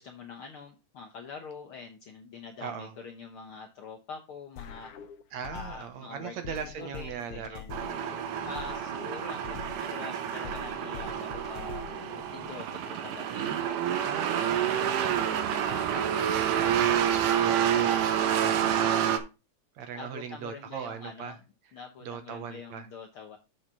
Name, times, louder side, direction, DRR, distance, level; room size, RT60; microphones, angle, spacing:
voice 1, 0.0-4.9 5.5-7.8 8.4-11.9 12.3-13.8 14.4-17.5 18.3-19.0 19.9-21.4 21.7-23.4, left 5 dB, 65° left, 2 dB, 1.3 m, -45 dB
voice 2, 2.6-2.9 5.3-7.6 14.0-15.2 16.4-18.5 19.8-21.4 22.0-22.9, right 7 dB, 70° right, 8 dB, 2.1 m, -40 dB
sound 1, 4.6-6.0 6.4-10.0 10.4-12.6, left 8 dB, 85° left, 1.2 m, -44 dB
sound 2, 7.7-19.2, right 9 dB, 85° right, 2.5 m, -28 dB
7.6 x 5.0 x 5.4 m, 0.28 s
omnidirectional pair, 3.6 m